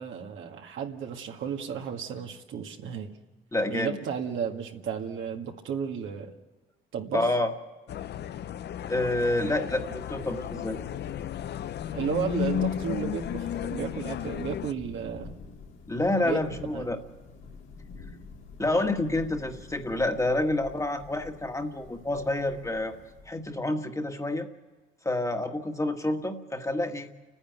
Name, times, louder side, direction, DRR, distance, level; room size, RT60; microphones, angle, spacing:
voice 1, 0.0-3.1 3.7-6.3 6.9-7.3 11.9-15.3 16.2-16.4 16.7-16.9, right 7 dB, 75° right, 3 dB, 2.0 m, -33 dB
voice 2, 3.5-4.0 7.1-7.5 8.9-10.8 15.9-17.0 18.6-22.9 23.2-24.5 25.0-27.1, left 2 dB, 15° left, 5 dB, 1.7 m, -28 dB
sound 1, 7.9-14.7, left 10 dB, 60° left, 0.6 m, -33 dB
Thunder / Rain, 9.5-23.6, left 4 dB, 80° left, 2.8 m, -47 dB
30.0 x 10.0 x 9.4 m, 1.2 s
cardioid pair, 90°, 20 cm